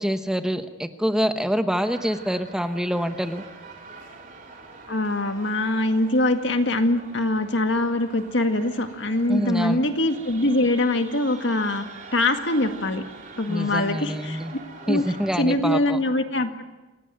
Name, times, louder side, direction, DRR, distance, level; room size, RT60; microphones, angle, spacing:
voice 1, 0.0-3.4 9.3-9.8 13.5-14.5 14.9-16.0, equal, 5° right, 8 dB, 1.0 m, -26 dB
sound 1, 1.8-15.4, right 4 dB, 45° right, 3.8 m, -44 dB
voice 2, 4.9-11.9 12.1-13.0 13.4-14.4 14.8-15.0 15.4-16.6, left 1 dB, 65° left, 7 dB, 2.0 m, -23 dB
27.5 x 17.0 x 9.2 m, 1.2 s
head